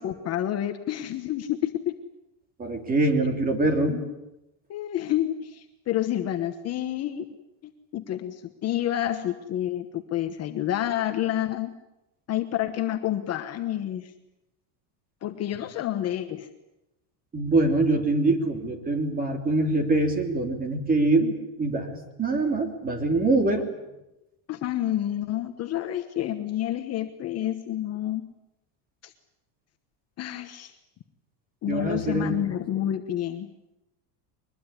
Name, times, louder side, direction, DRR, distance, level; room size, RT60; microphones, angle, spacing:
voice 1, 0.0-1.9 3.8-4.2 4.7-7.2 7.6-11.7 12.3-14.1 15.2-16.5 24.5-28.3 29.0-29.1 30.2-30.7 31.6-33.5, left 12 dB, 30° left, 6 dB, 1.3 m, -29 dB
voice 2, 2.6-3.9 17.3-23.7 31.7-32.4, right 2 dB, 20° right, 7 dB, 3.1 m, -24 dB
23.0 x 21.0 x 10.0 m, 0.94 s
cardioid pair, 165°, 47 cm